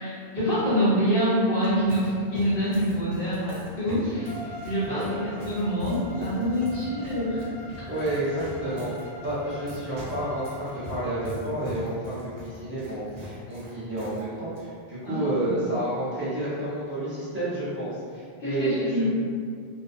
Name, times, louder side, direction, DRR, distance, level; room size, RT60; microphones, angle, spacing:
voice 1, 0.0-4.3 4.6-7.4 7.8-7.9 15.0-15.7 18.4-19.0, equal, 60° left, -12 dB, 1.0 m, -26 dB
sound 1, 1.4-14.2 14.5-14.6 15.4-15.7, left 1 dB, 60° right, 0.8 m, -41 dB
Bowed string instrument, 4.1-11.3, equal, 90° left, 0.9 m, -44 dB
voice 2, 7.9-19.0, right 1 dB, 10° right, -14 dB, 0.9 m, -30 dB
2.4 x 2.2 x 2.5 m, 2.2 s
omnidirectional pair, 1.1 m